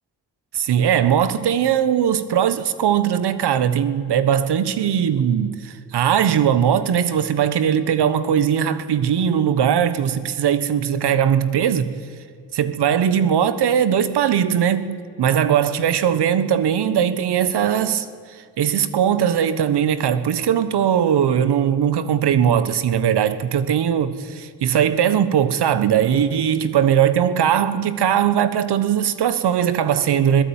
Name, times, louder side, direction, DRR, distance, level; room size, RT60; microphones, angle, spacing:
voice 1, 0.5-11.9 12.5-18.1 18.6-30.4, right 9 dB, 85° right, 1.3 m, -19 dB
25.5 x 17.5 x 8.9 m
cardioid pair, 50°, 39 cm